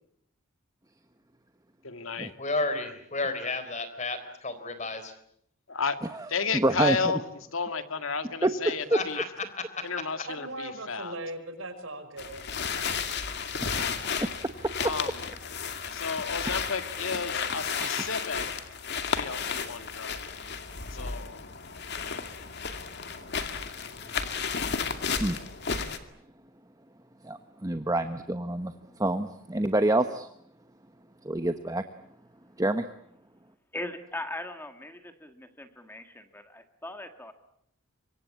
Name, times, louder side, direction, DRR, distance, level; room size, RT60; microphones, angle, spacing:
voice 1, 1.8-2.3 5.7-6.0 6.3-7.2 7.5-9.2 9.8-11.1 14.8-15.3 15.9-18.5 19.1-20.2 20.9-21.4 22.1-22.2, left 5 dB, 75° left, 9 dB, 2.1 m, -32 dB
voice 2, 2.4-5.1 8.9-9.3 9.6-9.8, left 3 dB, 35° left, 11 dB, 3.8 m, -32 dB
voice 3, 6.5-7.2 8.4-8.8 14.2-14.3 14.6-14.7 16.5-16.6 17.8-17.9 25.2-25.4 27.2-30.3 31.2-31.8 32.6-32.8, right 1 dB, 15° right, 9 dB, 1.0 m, -27 dB
voice 4, 10.3-12.5, right 1 dB, 70° right, 8 dB, 5.6 m, -39 dB
sound 1, 12.2-26.0, left 6 dB, 55° left, 2.3 m, -33 dB
voice 5, 33.7-37.3, left 1 dB, 10° left, 8 dB, 1.6 m, -39 dB
26.5 x 24.0 x 8.5 m, 0.71 s
head